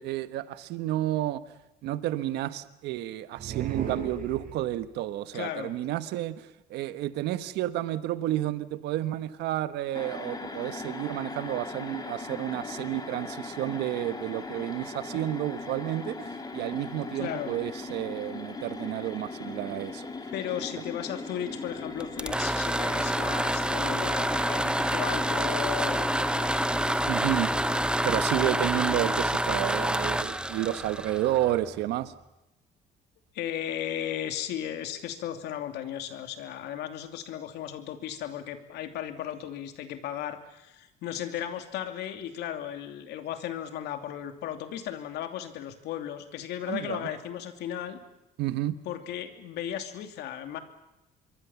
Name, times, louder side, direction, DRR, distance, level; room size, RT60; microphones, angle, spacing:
voice 1, 0.0-1.4 1.8-20.1 27.1-27.5 28.0-32.1 46.6-47.1 48.4-48.7, right 14 dB, 85° right, 1.2 m, -31 dB
sound 1, 3.4-4.9, right 7 dB, 55° right, 4.7 m, -35 dB
voice 2, 5.3-5.7 17.1-17.5 20.3-26.5 33.3-48.0 48.8-50.6, left 10 dB, 80° left, 2.8 m, -35 dB
sound 2, 9.9-29.2, left 3 dB, 25° left, 3.2 m, -39 dB
sound 3, 22.0-31.8, right 1 dB, 5° right, 1.0 m, -28 dB
26.5 x 23.0 x 7.2 m
cardioid pair, 110°, 17 cm